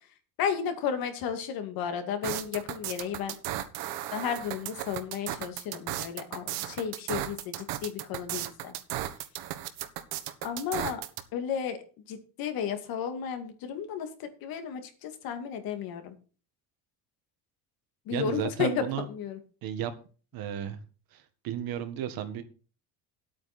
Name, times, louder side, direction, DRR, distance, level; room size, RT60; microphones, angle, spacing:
voice 1, 0.4-3.4 4.1-8.7 10.4-11.0 11.3-16.2 18.1-19.4, left 8 dB, 65° left, 7 dB, 2.3 m, -33 dB
sound 1, 2.2-11.2, right 13 dB, 85° right, 1.4 m, -35 dB
voice 2, 18.1-19.1 19.6-19.9 20.3-20.8 21.1-22.4, right 10 dB, 65° right, 8 dB, 1.8 m, -33 dB
11.5 x 8.8 x 4.3 m, 0.37 s
cardioid pair, 170°, 38 cm